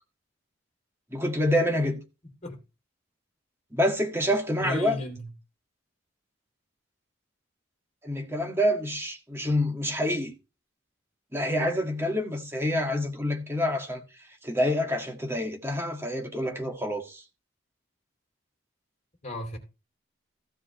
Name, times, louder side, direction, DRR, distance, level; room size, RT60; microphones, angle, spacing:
voice 1, 1.1-2.0 3.7-5.0 8.0-10.3 11.3-14.0 14.4-17.2, left 1 dB, 15° right, 1.8 m, -27 dB
voice 2, 4.6-5.3 19.2-19.6, left 1 dB, 35° left, 2.8 m, -34 dB
15.0 x 7.4 x 3.2 m
head